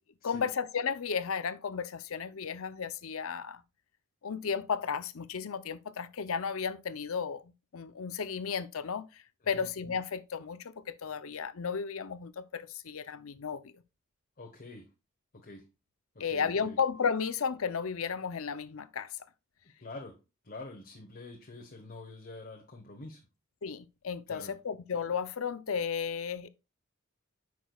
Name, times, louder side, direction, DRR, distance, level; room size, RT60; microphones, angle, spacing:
voice 1, 0.2-3.6 4.2-13.8 16.2-19.1 23.6-26.5, left 6 dB, 75° left, 0.6 m, -34 dB
voice 2, 14.4-14.9 15.3-15.6 16.1-16.8 19.8-20.2 20.4-23.3 24.3-24.5, left 2 dB, 45° left, 1.1 m, -46 dB
9.3 x 6.1 x 2.3 m
head